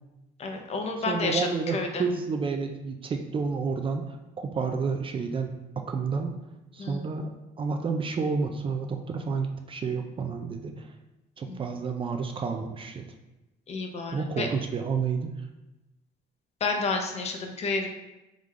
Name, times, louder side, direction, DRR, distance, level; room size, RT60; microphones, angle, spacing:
voice 1, 0.4-2.0 6.8-7.0 11.5-11.6 13.7-14.5 16.6-17.9, left 3 dB, 40° left, 4 dB, 0.6 m, -30 dB
voice 2, 1.1-6.3 6.7-7.3 7.6-10.9 11.4-13.0 14.1-15.3, right 5 dB, 30° right, 5 dB, 0.4 m, -30 dB
3.7 x 3.4 x 3.1 m, 0.99 s
cardioid pair, 110°, 17 cm